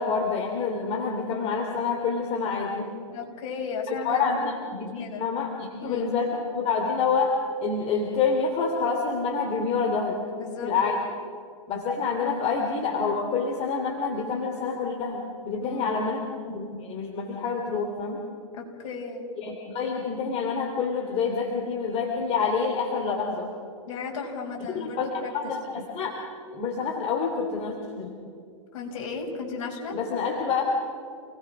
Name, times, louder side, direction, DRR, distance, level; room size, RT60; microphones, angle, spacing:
voice 1, 0.0-2.9 4.0-10.2 10.6-11.0 11.7-16.2 16.5-18.2 19.4-23.5 24.7-25.1 25.3-26.1 26.5-28.1 29.9-30.6, left 5 dB, 35° left, 1 dB, 3.1 m, -27 dB
voice 2, 3.1-4.5 4.7-5.3 5.8-6.2 10.3-10.7 15.6-16.0 18.5-19.3 23.9-25.3 28.7-30.0, left 4 dB, 60° left, 0 dB, 6.4 m, -35 dB
28.5 x 19.0 x 6.2 m, 2.3 s
hypercardioid pair, 125°, 17 cm